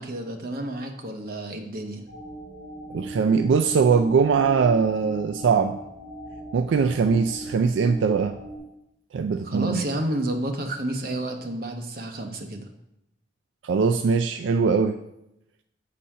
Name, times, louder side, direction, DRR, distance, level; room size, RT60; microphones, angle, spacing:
voice 1, 0.0-2.0 9.4-12.7, right 1 dB, 50° right, 4 dB, 0.9 m, -30 dB
sound 1, 2.1-8.6, right 1 dB, 25° right, 2.6 m, -39 dB
voice 2, 2.9-5.8 6.5-8.4 9.1-9.8 13.6-15.0, right 5 dB, 80° right, 7 dB, 0.3 m, -21 dB
7.4 x 4.1 x 5.5 m, 0.85 s
head